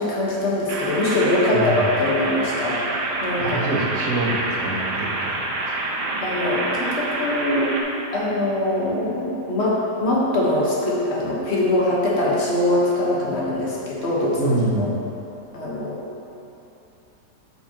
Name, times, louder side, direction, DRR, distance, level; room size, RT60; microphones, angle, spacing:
voice 1, 0.0-2.8 3.2-3.6 6.2-7.7 8.1-14.9 15.5-16.0, left 1 dB, 45° left, -6 dB, 1.5 m, -22 dB
sound 1, 0.7-7.8, right 2 dB, 85° right, 1.4 m, -27 dB
voice 2, 1.5-1.9 3.4-5.6 14.4-15.0, right 2 dB, 60° right, -4 dB, 1.3 m, -25 dB
9.4 x 5.5 x 2.9 m, 2.9 s
omnidirectional pair, 1.8 m